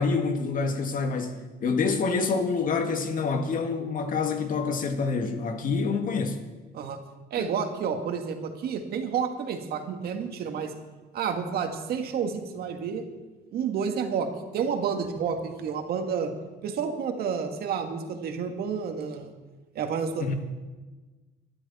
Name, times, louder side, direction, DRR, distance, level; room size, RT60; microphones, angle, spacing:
voice 1, 0.0-6.4 7.4-7.5 20.2-20.3, left 4 dB, 55° left, 1.9 m, -27 dB
voice 2, 7.3-10.7 11.1-13.1 13.5-16.3 16.6-19.3 19.8-20.3, right 6 dB, 65° right, 1.9 m, -30 dB
20.0 x 12.5 x 4.2 m
cardioid pair, 110°, 17 cm